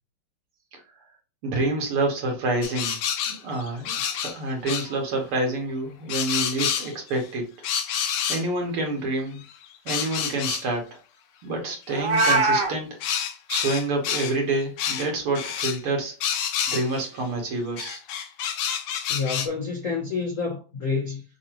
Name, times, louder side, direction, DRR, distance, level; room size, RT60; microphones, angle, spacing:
voice 1, 1.4-3.0 3.3-7.5 8.3-9.4 9.9-11.0 11.4-12.9 13.5-16.2 16.7-18.0, right 2 dB, 75° right, 2.4 m, -27 dB
sound 1, 2.6-4.4 4.7-4.9 6.1-7.2 7.6-8.5 9.4-10.7 12.2-12.4 13.0-14.4 14.8-15.1 15.4-15.8 16.2-17.1 17.8-19.5, left 8 dB, 85° left, 1.6 m, -28 dB
Meow, 11.9-12.7, right 3 dB, 55° right, 1.6 m, -21 dB
voice 2, 19.1-21.2, left 4 dB, 65° left, 0.7 m, -28 dB
6.4 x 2.7 x 2.9 m
omnidirectional pair, 2.4 m